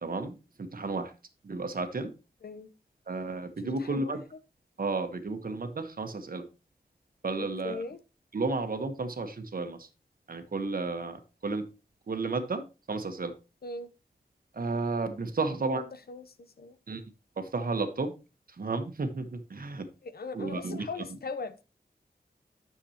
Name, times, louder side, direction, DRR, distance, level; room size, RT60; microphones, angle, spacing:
voice 1, 0.0-1.1 1.4-2.1 3.1-4.2 4.8-6.4 7.2-7.8 8.3-9.9 10.3-11.7 12.1-12.6 12.9-13.3 14.5-15.8 16.9-17.0 17.4-18.1 18.5-19.9 20.3-20.8, right 3 dB, 60° right, 1.3 m, -32 dB
voice 2, 3.6-4.2 7.4-8.0 13.6-13.9 15.5-16.8 20.0-21.6, left 3 dB, 70° left, 0.8 m, -40 dB
10.0 x 7.0 x 2.9 m
wide cardioid pair, 100°, 17 cm